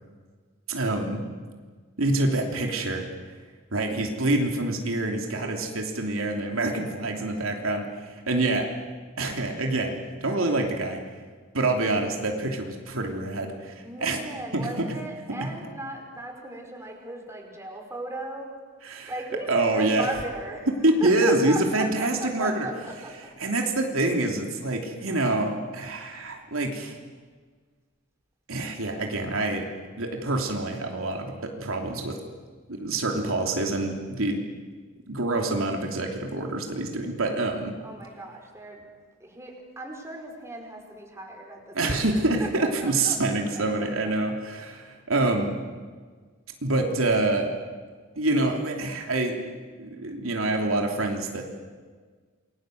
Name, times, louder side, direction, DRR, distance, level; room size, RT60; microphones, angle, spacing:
voice 1, 0.7-1.2 2.0-3.1 3.7-8.7 9.2-9.9 10.2-11.0 11.5-14.2 14.5-14.7 15.3-15.5 18.8-19.1 19.5-20.1 20.8-22.7 23.4-27.0 28.5-29.7 30.0-32.2 32.7-34.4 35.1-37.7 41.7-45.6 46.6-47.5 48.2-51.5, right 2 dB, 75° right, 2 dB, 3.1 m, -26 dB
voice 2, 5.3-5.6 7.4-7.5 13.8-18.5 19.1-20.7 21.0-23.3 37.8-38.9 39.2-43.9, right 1 dB, 15° right, 1 dB, 5.2 m, -37 dB
29.0 x 22.5 x 7.9 m, 1.5 s
head